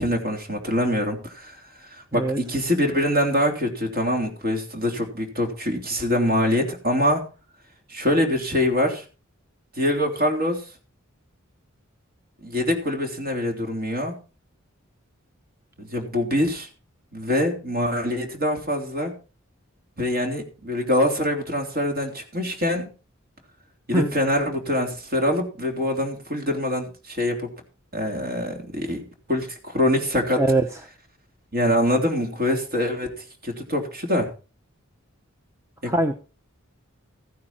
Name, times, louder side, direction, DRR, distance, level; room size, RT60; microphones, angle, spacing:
voice 1, 0.0-1.6 2.1-7.2 7.9-9.0 9.8-10.6 12.4-14.2 15.8-16.7 17.1-19.1 20.0-22.9 23.9-27.5 27.9-29.0 29.3-30.4 31.5-34.3 35.8-35.9, left 1 dB, 50° right, 3 dB, 3.4 m, -24 dB
voice 2, 2.1-2.4 23.9-24.1 30.4-30.6 35.8-36.1, right 2 dB, 15° right, 5 dB, 0.9 m, -21 dB
15.0 x 9.6 x 4.4 m, 0.34 s
head